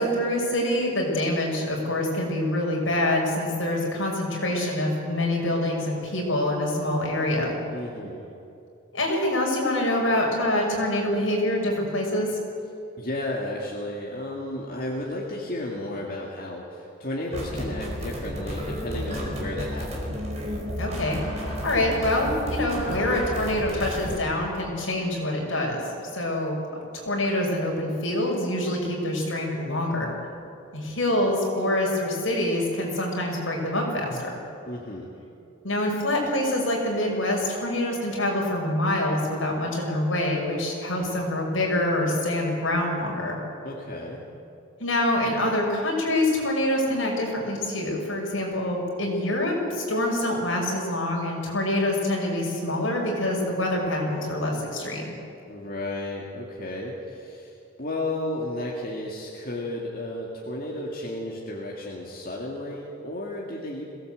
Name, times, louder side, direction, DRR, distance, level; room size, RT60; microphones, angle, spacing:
voice 1, 0.0-7.5 8.9-12.3 20.8-25.8 26.1-30.1 30.7-34.4 35.6-43.4 44.8-55.1, left 1 dB, 75° left, -1 dB, 5.9 m, -26 dB
voice 2, 7.7-8.2 13.0-20.1 34.7-35.1 43.6-44.2 55.5-63.8, left 1 dB, 45° left, -3 dB, 2.4 m, -33 dB
sound 1, 17.3-24.2, equal, 35° right, 4.8 m, -32 dB
22.0 x 17.0 x 8.1 m, 2.6 s
head